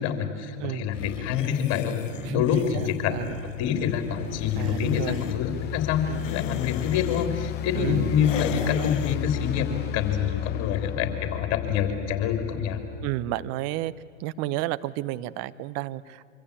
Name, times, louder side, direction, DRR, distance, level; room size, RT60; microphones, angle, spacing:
voice 1, 0.0-2.0 2.3-12.8, left 8 dB, 40° left, 6 dB, 3.9 m, -26 dB
sound 1, 0.9-5.4 6.0-7.3 8.2-9.2, left 11 dB, 70° left, 0.8 m, -36 dB
voice 2, 2.2-3.4 4.6-5.2 6.1-6.3 7.7-8.1 8.8-8.9 13.0-13.9 14.2-16.2, right 15 dB, 40° right, 16 dB, 0.9 m, -32 dB
sound 2, 3.5-13.5, left 15 dB, 25° left, 0.7 m, -34 dB
25.5 x 25.5 x 8.6 m, 2.2 s
figure-of-eight pair, 95°, 39 cm